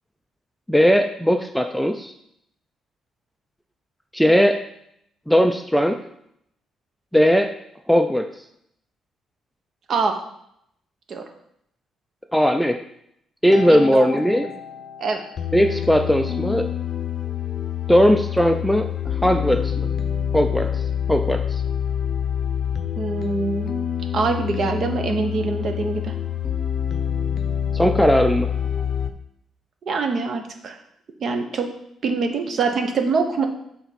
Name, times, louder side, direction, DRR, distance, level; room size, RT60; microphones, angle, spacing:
voice 1, 0.7-2.1 4.1-4.6 5.3-6.0 7.1-7.5 7.9-8.3 12.3-12.8 13.4-14.5 15.5-16.7 17.9-18.9 19.2-19.9 20.3-20.8 21.1-21.6 27.7-28.5, equal, ahead, 6 dB, 0.4 m, -18 dB
sound 1, 13.5-29.1, left 9 dB, 50° left, 0.6 m, -27 dB
voice 2, 13.7-14.1 15.0-15.2 23.0-23.7 24.1-26.1 29.9-30.8 31.2-31.7 32.0-33.5, right 4 dB, 50° right, 5 dB, 0.9 m, -24 dB
5.7 x 4.1 x 5.8 m, 0.74 s
cardioid pair, 130°, 0 cm